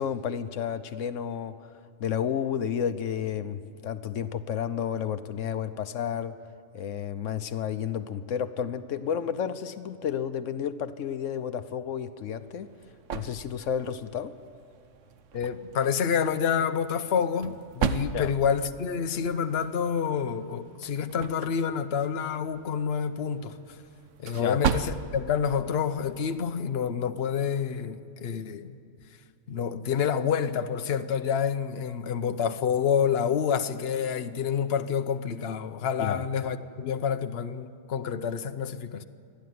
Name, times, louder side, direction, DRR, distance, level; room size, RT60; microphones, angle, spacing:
voice 1, 0.0-1.7 2.0-6.4 6.7-12.7 13.1-14.3 18.1-18.3 24.3-24.6 36.0-36.2, left 8 dB, 85° left, 1.1 m, -31 dB
sound 1, 12.2-26.7, right 6 dB, 80° right, 1.2 m, -37 dB
voice 2, 15.3-23.8 24.2-28.8 29.5-39.0, left 7 dB, 60° left, 1.0 m, -28 dB
29.0 x 11.5 x 9.5 m
omnidirectional pair, 1.3 m